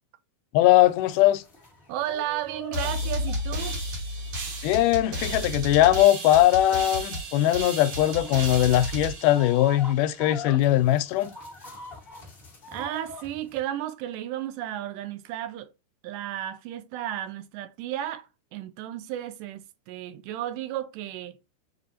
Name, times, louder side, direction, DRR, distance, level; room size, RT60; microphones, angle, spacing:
voice 1, 0.5-1.4 4.6-11.3, left 14 dB, 85° left, 2.1 m, -20 dB
sound 1, 0.8-13.6, left 1 dB, 40° left, 0.8 m, -45 dB
voice 2, 1.9-3.8 12.7-15.7 16.0-21.4, right 12 dB, 85° right, 2.2 m, -33 dB
sound 2, 2.7-10.2, equal, 55° right, 1.6 m, -32 dB
7.3 x 2.7 x 2.7 m
omnidirectional pair, 3.7 m